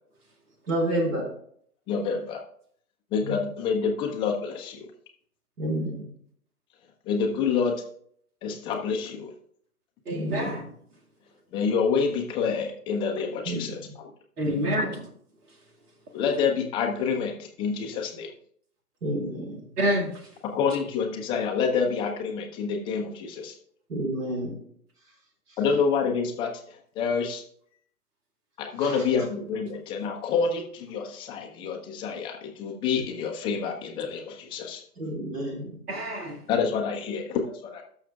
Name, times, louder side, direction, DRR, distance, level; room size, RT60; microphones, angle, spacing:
voice 1, 0.7-1.3 3.2-3.3 5.6-6.0 10.1-10.6 13.4-13.7 14.5-15.0 19.0-19.6 23.9-24.6 28.8-29.0 35.0-35.8, right 1 dB, 60° right, 4.7 m, -30 dB
voice 2, 1.9-2.4 3.1-4.9 7.1-7.8 8.4-9.3 11.5-13.8 16.1-18.3 20.4-23.5 25.6-26.5 27.0-27.4 28.6-34.8 36.5-37.8, left 5 dB, 10° left, 0.6 m, -27 dB
voice 3, 10.1-10.6 14.4-15.0 19.8-20.3 35.9-36.4, equal, 75° right, 2.1 m, -27 dB
18.5 x 6.4 x 2.3 m
figure-of-eight pair, 125°, 46 cm